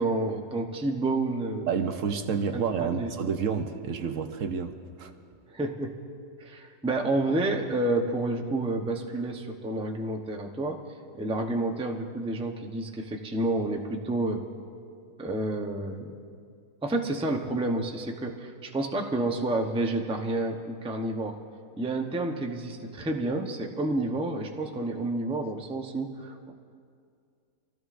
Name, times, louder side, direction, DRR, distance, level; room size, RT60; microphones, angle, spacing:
voice 1, 0.0-1.7 2.5-3.1 5.5-5.9 6.4-10.8 11.1-14.5 15.2-16.1 16.8-21.4 21.8-26.5, right 2 dB, 10° right, 2 dB, 0.4 m, -29 dB
voice 2, 1.7-5.1, right 6 dB, 60° right, 7 dB, 0.9 m, -29 dB
25.0 x 16.0 x 2.5 m, 2.3 s
omnidirectional pair, 1.8 m